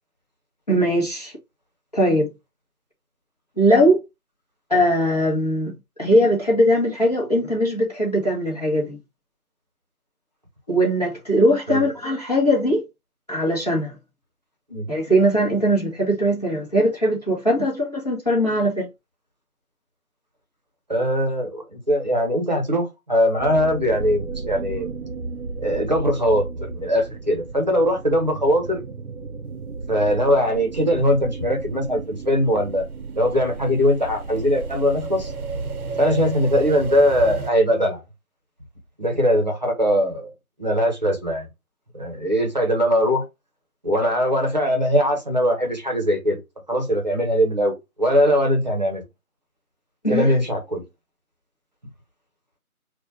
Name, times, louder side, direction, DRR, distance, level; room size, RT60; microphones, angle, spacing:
voice 1, 0.7-1.3 1.9-2.3 3.6-4.0 4.7-5.7 6.0-9.0 10.7-12.8 13.3-13.9 14.9-18.9 50.0-50.3, equal, 25° left, 1.1 m, -20 dB
voice 2, 20.9-24.9 25.6-28.8 29.9-32.8 33.1-35.3 36.0-38.0 39.0-40.3 40.6-41.5 41.9-43.2 43.8-46.4 46.7-49.0 50.1-50.8, equal, 30° right, 1.0 m, -21 dB
sound 1, 23.4-37.5, right 4 dB, 75° right, 0.8 m, -33 dB
4.0 x 2.4 x 4.2 m
figure-of-eight pair, 165°, 44 cm